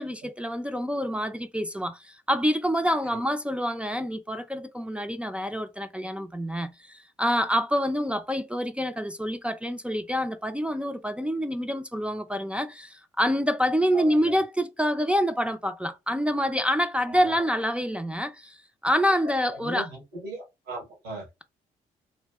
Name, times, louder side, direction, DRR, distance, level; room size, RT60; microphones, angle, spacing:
voice 1, 0.0-18.6 18.8-19.9, equal, 5° right, 0.4 m, -27 dB
voice 2, 13.9-14.4 17.0-17.5 19.5-21.2, right 1 dB, 85° right, 1.5 m, -38 dB
3.3 x 2.6 x 2.3 m
hypercardioid pair, 50°, 17 cm